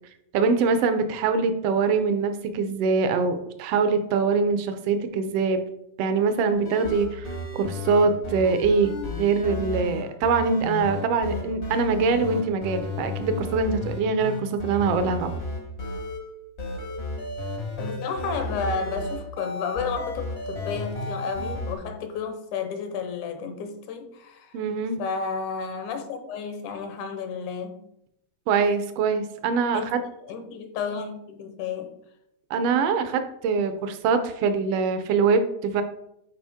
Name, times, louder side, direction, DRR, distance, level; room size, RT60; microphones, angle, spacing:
voice 1, 0.3-5.6 6.0-7.3 7.5-15.3 24.5-25.0 28.5-30.0 32.5-35.8, right 4 dB, 75° right, 1.4 m, -23 dB
sound 1, 6.5-16.3 16.6-21.7, left 2 dB, 70° left, 0.6 m, -33 dB
voice 2, 17.8-24.6 25.0-27.8 29.7-29.9 30.2-32.0, left 5 dB, 85° left, 2.3 m, -32 dB
8.9 x 4.8 x 3.5 m
omnidirectional pair, 3.4 m